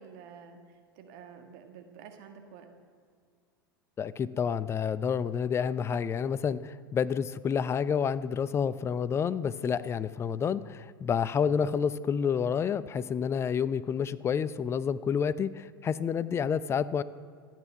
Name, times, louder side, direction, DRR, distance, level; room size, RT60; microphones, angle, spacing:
voice 1, 0.0-2.7, right 6 dB, 50° right, 5 dB, 1.7 m, -49 dB
voice 2, 4.0-17.0, left 7 dB, 20° left, 16 dB, 0.6 m, -29 dB
26.0 x 9.4 x 5.9 m, 2.1 s
figure-of-eight pair, 85°, 12 cm